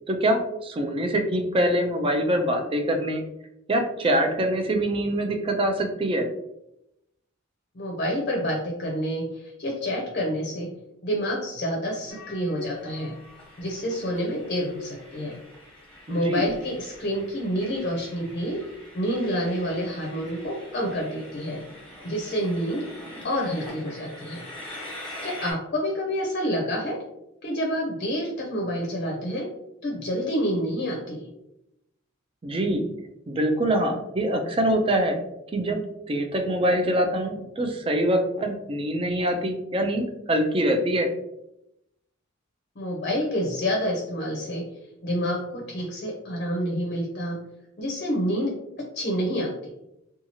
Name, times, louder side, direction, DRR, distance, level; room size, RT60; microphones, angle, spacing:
voice 1, 0.1-3.2 3.7-6.3 16.1-16.4 32.4-32.8 33.3-35.2 35.5-35.8 36.1-41.1, right 1 dB, 25° right, 4 dB, 0.4 m, -24 dB
voice 2, 7.7-10.7 11.0-13.1 13.6-15.4 16.1-18.7 18.9-21.6 22.0-22.9 23.2-24.5 25.2-27.0 27.4-29.5 29.8-31.3 42.8-44.7 45.0-47.4 47.8-49.7, equal, 45° left, 0 dB, 0.6 m, -28 dB
Train, 12.1-25.5, left 1 dB, 5° left, 1.1 m, -44 dB
2.8 x 2.3 x 2.8 m, 0.83 s
head